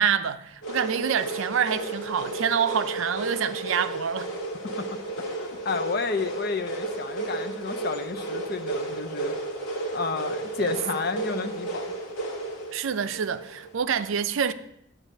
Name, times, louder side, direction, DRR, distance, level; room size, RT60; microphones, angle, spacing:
voice 1, 0.0-4.3 12.7-14.5, right 7 dB, 70° right, 0.4 m, -26 dB
sound 1, 0.6-13.8, right 2 dB, 75° left, 1.9 m, -33 dB
voice 2, 4.8-9.4 9.9-11.9, left 4 dB, 50° left, 0.6 m, -31 dB
11.5 x 8.6 x 2.7 m
head